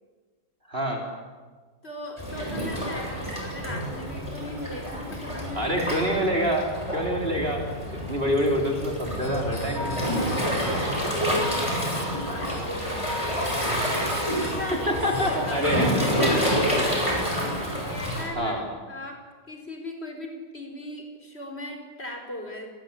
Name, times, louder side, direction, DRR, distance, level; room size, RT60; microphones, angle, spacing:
voice 1, 0.7-1.0 5.5-7.6 7.9-10.3 14.9-15.9 18.4-18.7, equal, 40° right, 1 dB, 3.9 m, -26 dB
voice 2, 1.8-5.8 12.2-13.7 14.1-14.9 15.3-17.3 17.8-19.2 19.5-22.7, left 1 dB, 45° left, 3 dB, 5.1 m, -38 dB
Waves surf, 2.2-18.2, equal, 20° left, 8.1 m, -28 dB
sound 1, 9.2-16.3, left 2 dB, 75° left, 2.8 m, -38 dB
28.5 x 21.5 x 8.8 m, 1.4 s
omnidirectional pair, 1.5 m